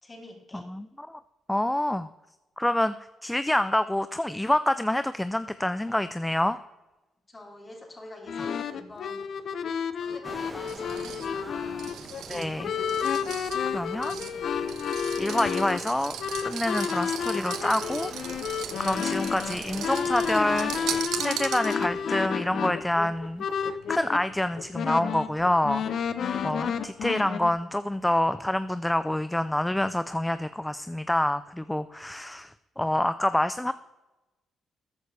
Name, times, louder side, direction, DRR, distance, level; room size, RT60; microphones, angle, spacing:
voice 1, 0.0-0.7 7.3-9.2 10.0-11.9 13.5-14.7, left 1 dB, 25° left, 1 dB, 3.3 m, -46 dB
voice 2, 0.5-1.2 1.5-2.1 2.6-2.9 3.2-6.6 12.3-12.7 13.7-14.2 15.2-16.2 16.4-18.1 18.8-20.7 21.2-25.9 26.4-33.7, left 1 dB, 5° left, 13 dB, 0.4 m, -27 dB
sound 1, 8.3-24.2 24.6-27.5, left 7 dB, 60° left, 0.8 m, -31 dB
sound 2, 10.2-21.0, right 2 dB, 15° right, 1.3 m, -45 dB
sound 3, 10.7-22.0, right 9 dB, 80° right, 0.9 m, -38 dB
13.5 x 9.2 x 3.3 m, 1.1 s
cardioid pair, 90°, 0 cm